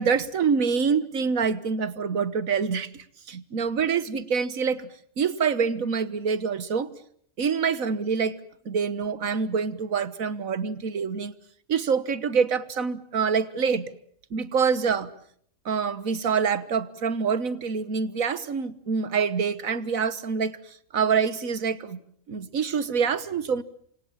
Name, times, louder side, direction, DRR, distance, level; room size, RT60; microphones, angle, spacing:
voice 1, 0.0-4.9 5.2-6.9 7.4-8.4 8.7-11.3 11.7-13.9 14.3-15.1 15.7-22.0 22.3-23.6, right 6 dB, 75° right, 15 dB, 1.8 m, -26 dB
28.5 x 25.5 x 7.4 m, 0.66 s
omnidirectional pair, 1.4 m